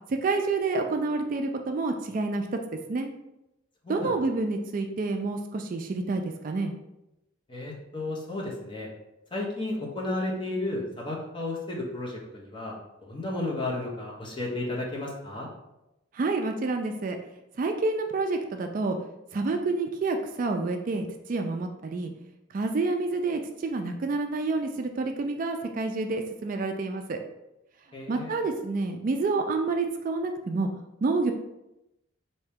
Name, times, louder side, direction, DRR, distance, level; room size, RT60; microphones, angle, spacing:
voice 1, 0.1-2.5 2.9-3.1 3.9-6.7 16.1-17.2 17.6-19.0 19.3-22.1 22.5-27.2 28.1-30.7 31.0-31.3, right 3 dB, 45° right, 5 dB, 0.3 m, -28 dB
voice 2, 7.5-8.9 9.3-12.8 13.0-15.5 27.9-28.4, left 2 dB, 25° left, -3 dB, 0.9 m, -33 dB
4.3 x 2.8 x 3.5 m, 0.91 s
head